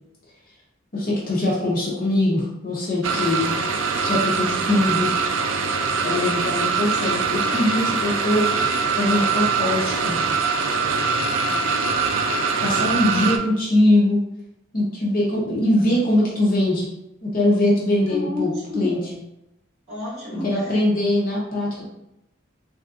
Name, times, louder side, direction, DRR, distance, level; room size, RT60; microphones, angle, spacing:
voice 1, 0.9-3.6 4.0-5.1 6.0-10.2 12.6-14.2 14.7-16.9 17.2-19.0 20.4-21.8, left 1 dB, 45° left, -4 dB, 0.6 m, -22 dB
sound 1, 3.0-13.4, right 5 dB, 80° right, 0.3 m, -23 dB
voice 2, 11.4-11.8 18.1-19.2 19.9-20.8, left 2 dB, 35° right, -8 dB, 1.4 m, -31 dB
3.3 x 2.5 x 2.4 m, 0.86 s
head